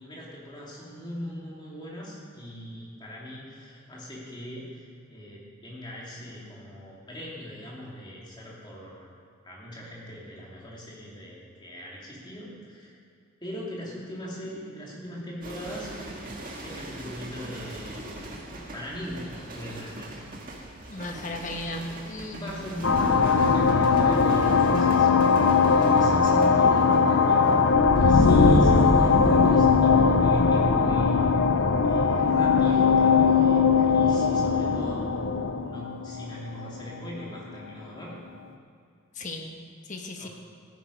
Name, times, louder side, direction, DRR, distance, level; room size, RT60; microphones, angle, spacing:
voice 1, 0.0-9.1 9.4-12.9 13.4-15.9 16.6-18.0 18.7-20.1 22.3-25.1 25.4-27.4 28.1-35.1 35.6-38.2 40.1-40.3, equal, 20° left, -4 dB, 2.8 m, -40 dB
sound 1, 15.4-32.6 32.9-33.3, right 1 dB, 40° right, 1.8 m, -42 dB
voice 2, 20.9-22.4 39.1-39.5 39.9-40.3, left 2 dB, 35° left, 3 dB, 1.2 m, -35 dB
sound 2, 22.8-37.0, left 5 dB, 65° left, 0.7 m, -20 dB
15.5 x 9.3 x 5.3 m, 2.3 s
head